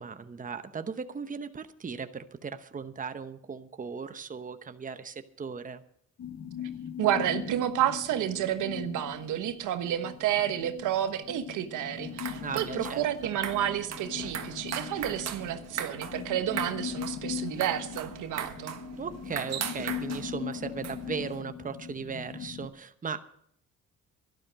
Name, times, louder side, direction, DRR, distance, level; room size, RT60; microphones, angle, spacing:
voice 1, 0.0-5.8 12.4-13.0 19.0-23.2, right 5 dB, 25° right, 10 dB, 0.9 m, -37 dB
sound 1, 6.2-22.7, left 8 dB, 65° left, 1.4 m, -40 dB
voice 2, 7.0-18.7, right 11 dB, 85° right, 9 dB, 1.2 m, -30 dB
sound 2, 12.0-21.4, right 8 dB, 60° right, 1.5 m, -39 dB
12.0 x 12.0 x 6.2 m, 0.66 s
cardioid pair, 90°, 30 cm